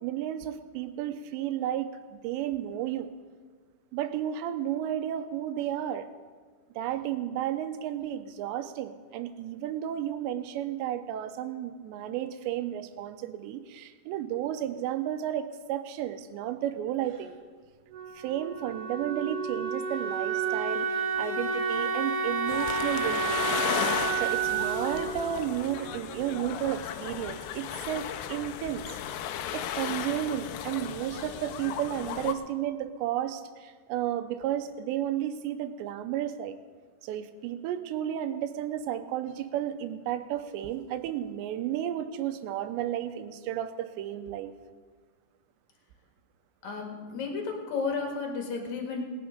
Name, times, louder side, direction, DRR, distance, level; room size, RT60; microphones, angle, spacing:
voice 1, 0.0-3.1 3.9-6.1 6.8-17.4 18.1-23.5 24.2-29.0 29.5-36.6 37.0-44.5, right 11 dB, 85° right, 10 dB, 2.8 m, -33 dB
Wind instrument woodwind instrument, 17.9-26.6, right 5 dB, 70° right, 2.9 m, -31 dB
sound 1, 22.5-32.3, left 10 dB, 85° left, 2.8 m, -35 dB
voice 2, 46.6-49.0, left 4 dB, 55° left, 1 dB, 2.4 m, -33 dB
19.0 x 9.5 x 5.1 m, 1.5 s
omnidirectional pair, 5.1 m